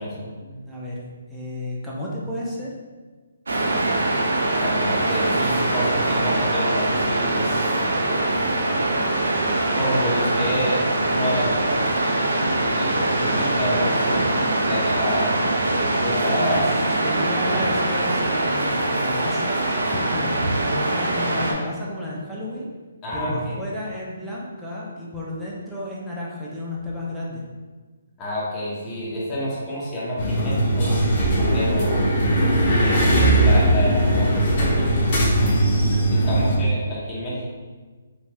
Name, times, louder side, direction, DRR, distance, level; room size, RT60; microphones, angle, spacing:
voice 1, 0.0-2.7 16.4-16.6 17.0-20.3 20.8-22.7 23.1-27.4 36.2-36.7, left 1 dB, ahead, -8 dB, 0.5 m, -32 dB
Waves surf, 3.5-21.5, right 2 dB, 85° right, 0.5 m, -23 dB
voice 2, 4.6-7.6 9.8-11.5 12.3-14.3 14.6-15.3 16.0-16.8 23.0-23.6 28.2-30.9 31.5-32.1 32.6-35.0 36.1-37.5, equal, 20° left, -7 dB, 0.9 m, -28 dB
sound 1, 30.2-36.6, right 1 dB, 40° left, 0.8 m, -19 dB
3.0 x 2.7 x 2.2 m, 1.4 s
hypercardioid pair, 155°, 0 cm